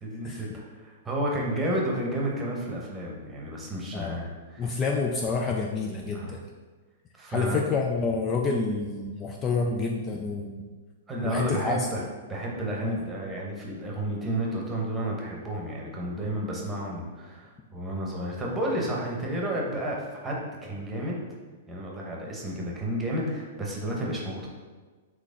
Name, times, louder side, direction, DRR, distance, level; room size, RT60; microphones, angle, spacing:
voice 1, 0.0-4.8 6.1-6.3 7.2-7.7 11.1-12.0 12.3-21.2 21.7-24.5, right 1 dB, 15° right, -3 dB, 1.0 m, -31 dB
voice 2, 3.9-4.3 4.6-6.4 7.3-10.6 11.2-11.9 12.8-13.0, left 4 dB, 25° left, 1 dB, 0.4 m, -28 dB
4.0 x 3.1 x 3.8 m, 1.4 s
hypercardioid pair, 130°, 0 cm